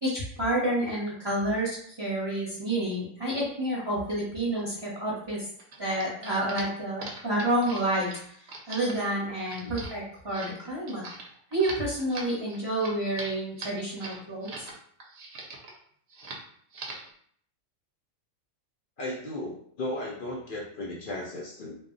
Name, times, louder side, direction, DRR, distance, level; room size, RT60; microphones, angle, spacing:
voice 1, 0.0-5.5 5.8-8.1 8.7-11.0 11.5-14.7, right 1 dB, 25° right, -8 dB, 0.7 m, -29 dB
sound 1, 5.6-14.7 15.0-15.8 16.1-16.4 16.7-17.1, right 3 dB, 60° right, 0.8 m, -41 dB
voice 2, 19.0-21.8, left 1 dB, 70° left, -2 dB, 0.5 m, -35 dB
2.3 x 2.0 x 3.7 m, 0.63 s
omnidirectional pair, 1.4 m